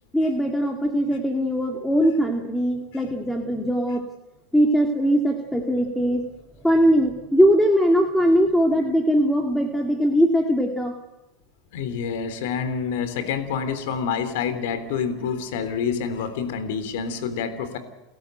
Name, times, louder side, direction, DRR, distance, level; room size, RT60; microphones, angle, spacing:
voice 1, 0.1-4.0 4.5-6.2 6.6-10.9, equal, 5° left, 2 dB, 2.2 m, -20 dB
voice 2, 11.7-17.8, left 6 dB, 70° left, 11 dB, 3.6 m, -27 dB
30.0 x 13.5 x 7.9 m, 1.0 s
supercardioid pair, 135°, 0 cm